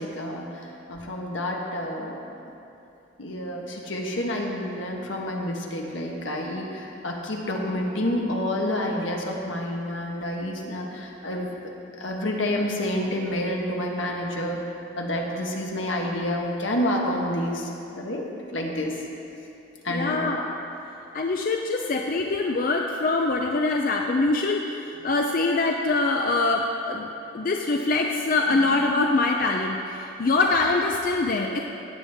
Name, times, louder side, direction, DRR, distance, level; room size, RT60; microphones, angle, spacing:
voice 1, 0.0-2.2 3.2-11.7 12.0-14.6 15.0-19.0 19.8-20.3 28.5-28.7, left 1 dB, 80° left, 0 dB, 1.3 m, -29 dB
voice 2, 19.9-20.5 21.1-31.6, left 3 dB, 45° left, 2 dB, 0.5 m, -24 dB
17.0 x 7.2 x 3.5 m, 2.8 s
head